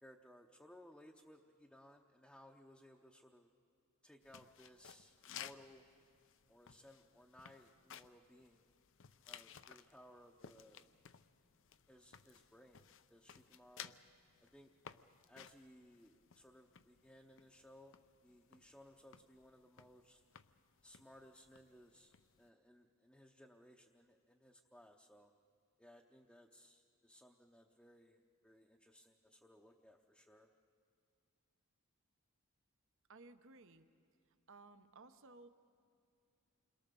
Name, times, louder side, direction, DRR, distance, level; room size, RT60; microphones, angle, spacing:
voice 1, 0.0-3.5 4.0-5.9 6.5-8.7 9.3-10.9 11.9-12.8 13.1-13.9 14.4-14.7 15.3-18.0 18.2-20.2 20.8-25.3 25.8-30.5, equal, 5° left, 0 dB, 0.8 m, -62 dB
sound 1, 4.2-22.5, left 9 dB, 60° left, 0.6 m, -58 dB
voice 2, 33.1-33.9 34.5-35.5, right 3 dB, 60° right, 9 dB, 1.0 m, -58 dB
28.5 x 22.0 x 6.9 m, 2.4 s
head